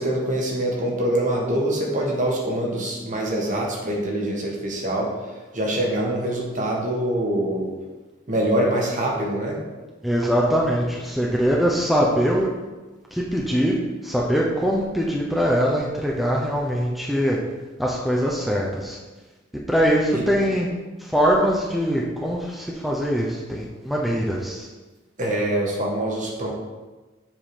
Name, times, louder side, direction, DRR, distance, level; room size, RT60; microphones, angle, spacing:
voice 1, 0.0-7.7 8.3-9.6 20.1-20.2 25.2-26.5, right 1 dB, 40° right, -1 dB, 1.4 m, -24 dB
voice 2, 10.0-12.5 13.1-13.8 14.0-17.4 17.8-19.0 19.7-20.7 21.0-24.7, equal, ahead, -3 dB, 0.6 m, -22 dB
7.4 x 3.7 x 4.9 m, 1.2 s
head